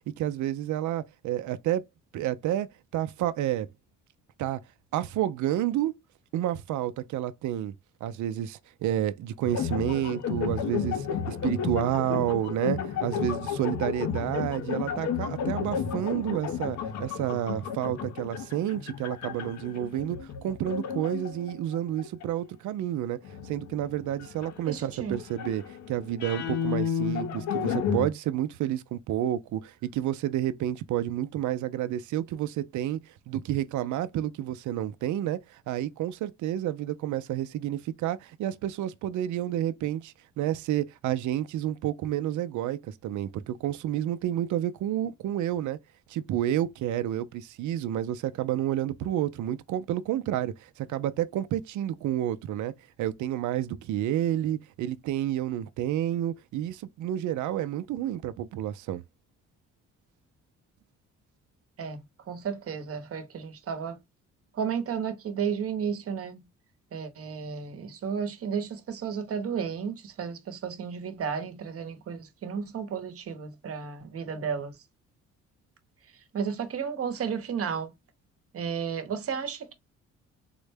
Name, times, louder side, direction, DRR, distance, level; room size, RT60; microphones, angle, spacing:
voice 1, 0.2-1.8 2.1-2.7 2.9-3.7 4.4-4.6 4.9-6.0 6.3-7.7 8.0-23.2 23.4-33.0 33.3-45.8 46.1-52.7 53.0-59.0, right 12 dB, 75° right, 0.5 m, -30 dB
sound 1, 9.4-22.3 23.2-28.1, left 7 dB, 65° left, 0.7 m, -32 dB
voice 2, 24.7-25.2 61.8-62.0 62.3-64.0 64.6-66.4 66.9-74.7 76.3-77.9 78.5-79.7, right 7 dB, 50° right, 0.9 m, -33 dB
3.8 x 2.1 x 3.3 m
cardioid pair, 90°, 30 cm